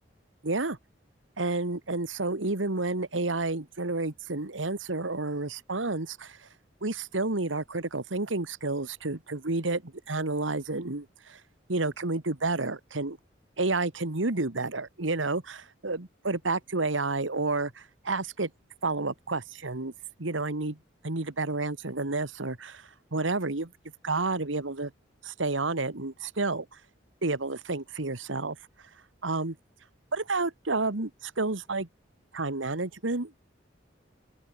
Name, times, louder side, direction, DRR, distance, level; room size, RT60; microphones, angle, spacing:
voice 1, 0.4-0.8 1.4-6.4 6.8-11.4 11.7-13.2 13.6-18.5 18.8-19.9 20.2-20.8 21.0-23.7 24.0-24.9 25.2-26.7 27.2-28.6 29.2-29.6 30.1-31.9 32.3-33.3, right 3 dB, 90° right, 1.8 m, -30 dB
open air
head